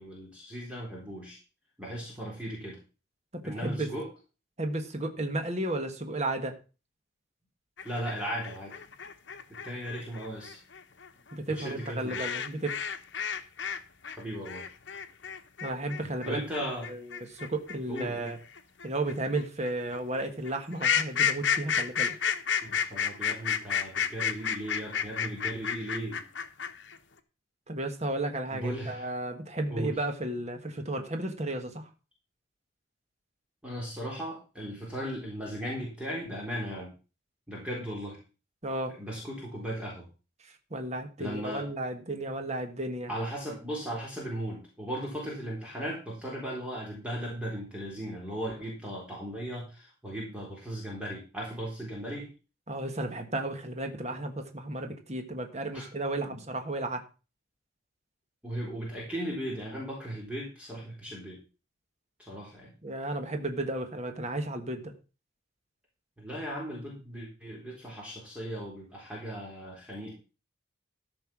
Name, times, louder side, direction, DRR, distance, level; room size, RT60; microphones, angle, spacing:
voice 1, 0.0-1.4 1.8-2.8 3.4-4.1 7.8-8.7 9.6-10.6 11.5-12.2 14.0-14.6 16.3-16.9 17.9-18.3 22.6-26.2 28.5-29.1 29.7-29.9 33.6-36.9 37.5-38.2 38.9-40.1 41.2-41.7 43.1-52.3 55.7-55.9 56.3-56.4 58.4-61.4 62.3-62.7 66.2-70.1, equal, 5° right, -3 dB, 3.8 m, -37 dB
voice 2, 3.3-3.9 4.6-6.6 11.3-12.8 15.6-16.4 16.9-18.4 18.8-22.1 27.7-31.9 38.6-39.0 40.4-43.1 52.7-57.0 62.8-64.9, right 2 dB, 35° right, 6 dB, 1.5 m, -33 dB
sound 1, 7.8-13.8 14.0-27.0, left 7 dB, 60° left, 1.1 m, -31 dB
14.0 x 5.8 x 6.0 m, 0.33 s
head